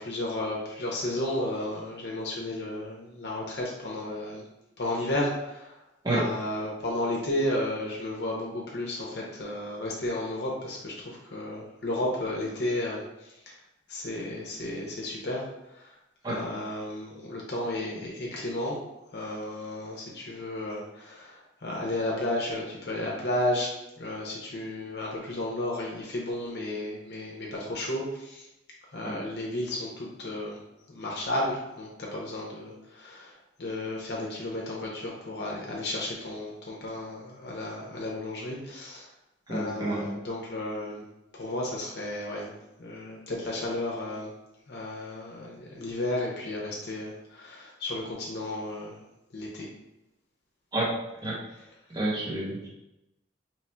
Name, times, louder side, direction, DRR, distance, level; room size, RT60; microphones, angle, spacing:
voice 1, 0.0-4.5 4.8-5.7 6.1-13.5 13.9-15.4 15.7-15.9 16.3-18.8 19.1-23.7 24.0-28.5 28.9-30.6 30.9-39.1 39.5-41.1 41.3-44.3 44.7-49.0 49.3-49.7 51.5-51.7, left 1 dB, 60° left, -3 dB, 0.6 m, -33 dB
voice 2, 39.5-40.0 50.7-50.9 51.2-51.3 51.9-52.7, right 2 dB, 20° right, -5 dB, 0.8 m, -29 dB
3.1 x 2.3 x 4.2 m, 0.91 s
head